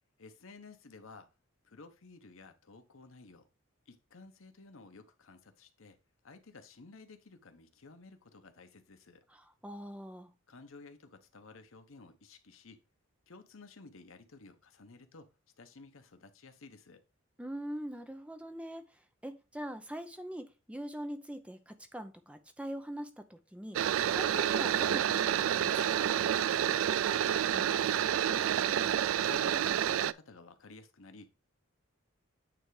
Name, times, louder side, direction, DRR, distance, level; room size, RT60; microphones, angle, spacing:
voice 1, 0.2-1.3 1.6-3.5 3.9-6.0 6.2-9.2 10.5-12.8 13.3-15.3 15.6-17.0 26.5-26.8 27.1-31.5, left 3 dB, 75° left, 1.0 m, -53 dB
voice 2, 9.3-10.3 17.4-23.8 24.1-26.1, equal, 5° right, 0.6 m, -42 dB
sound 1, 23.7-30.1, right 10 dB, 75° right, 0.3 m, -29 dB
8.9 x 3.4 x 4.8 m
head